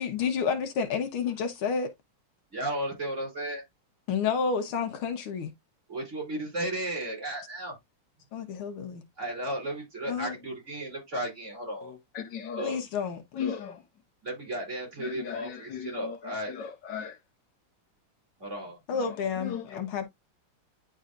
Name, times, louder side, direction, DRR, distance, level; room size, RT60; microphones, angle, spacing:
voice 1, 0.0-1.9 4.1-5.5 8.3-9.0 10.1-10.3 12.6-13.2 18.9-20.1, left 6 dB, 80° left, 1.8 m, -30 dB
voice 2, 2.5-3.6 5.9-7.8 9.2-12.0 12.6-12.8 14.2-16.6 18.4-18.8, right 1 dB, 35° right, 3.7 m, -34 dB
voice 3, 11.8-12.8 13.3-13.8 15.0-17.2 18.9-19.8, left 7 dB, 60° left, 1.6 m, -37 dB
10.0 x 4.0 x 2.4 m
omnidirectional pair, 2.3 m